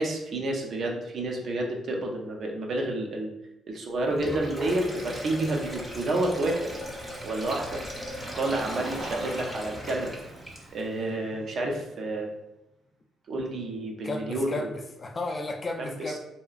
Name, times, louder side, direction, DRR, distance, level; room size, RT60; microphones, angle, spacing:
voice 1, 0.0-3.3 3.7-6.7 7.2-7.8 8.4-10.1 10.7-12.3 13.3-14.7, right 2 dB, 60° right, 1 dB, 0.5 m, -29 dB
Sink (filling or washing), 4.1-10.9, right 1 dB, 15° right, 0.7 m, -38 dB
Car, 7.7-12.1, right 1 dB, 80° right, 1.1 m, -43 dB
voice 2, 14.0-16.2, left 2 dB, 30° left, 3 dB, 0.3 m, -33 dB
2.8 x 2.3 x 2.4 m, 0.91 s
cardioid pair, 90°, 0 cm